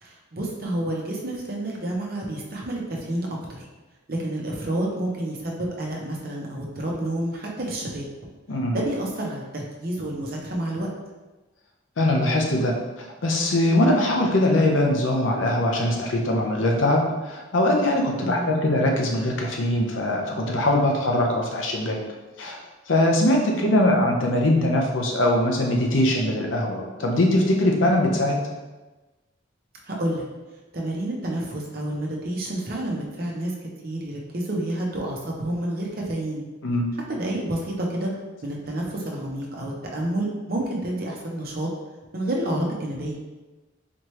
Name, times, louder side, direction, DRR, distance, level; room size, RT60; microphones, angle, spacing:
voice 1, 0.0-3.7 4.1-8.1 8.7-10.9 18.2-18.6 23.5-23.7 29.9-30.2 30.7-33.5 33.8-36.4 37.1-38.1 38.4-41.7 42.1-43.2, right 1 dB, 50° right, -2 dB, 0.8 m, -29 dB
voice 2, 12.0-22.0 22.4-22.6 22.9-28.4 36.6-36.9, left 1 dB, 90° left, 0 dB, 0.7 m, -22 dB
4.2 x 3.0 x 3.2 m, 1.2 s
head